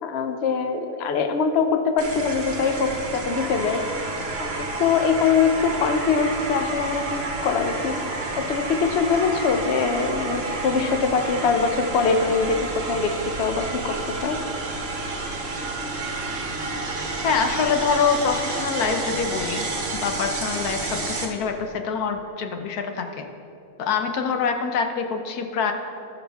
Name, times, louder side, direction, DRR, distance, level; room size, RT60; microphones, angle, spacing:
voice 1, 0.0-3.8 4.4-8.0 8.4-14.4, left 5 dB, 55° left, 7 dB, 0.8 m, -23 dB
sound 1, 2.0-21.2, right 3 dB, 45° right, 1.1 m, -30 dB
voice 2, 17.2-19.7 20.0-23.3 23.8-25.7, left 6 dB, 75° left, 5 dB, 1.3 m, -25 dB
17.5 x 6.1 x 3.5 m, 2.8 s
omnidirectional pair, 1.7 m